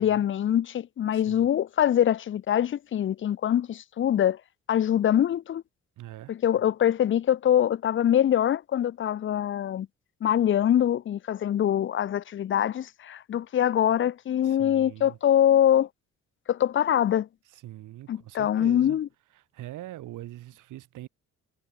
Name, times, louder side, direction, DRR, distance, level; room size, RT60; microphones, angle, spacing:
voice 1, 0.0-4.4 4.7-5.6 6.3-9.9 10.2-15.9 16.5-17.3 18.1-19.1, left 10 dB, 40° left, 0.5 m, -24 dB
voice 2, 1.1-1.5 6.0-6.3 14.4-15.2 17.5-19.0 19.5-21.1, right 15 dB, 85° right, 2.4 m, -43 dB
cardioid pair, 90°, 30 cm